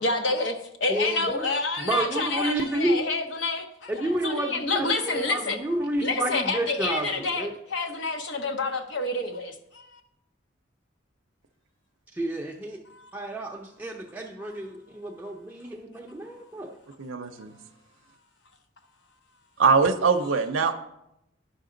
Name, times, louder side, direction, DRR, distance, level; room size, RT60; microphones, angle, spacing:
voice 1, 0.0-5.6 6.0-10.0 12.9-13.1 20.2-20.4, left 3 dB, 65° left, 6 dB, 0.9 m, -28 dB
voice 2, 0.9-1.5 1.8-3.0 3.9-7.5 12.1-12.8 13.1-16.7, right 1 dB, 10° right, -1 dB, 0.6 m, -30 dB
voice 3, 17.0-17.5 19.6-20.7, right 5 dB, 85° right, 5 dB, 0.5 m, -22 dB
10.0 x 5.9 x 3.8 m, 0.82 s
head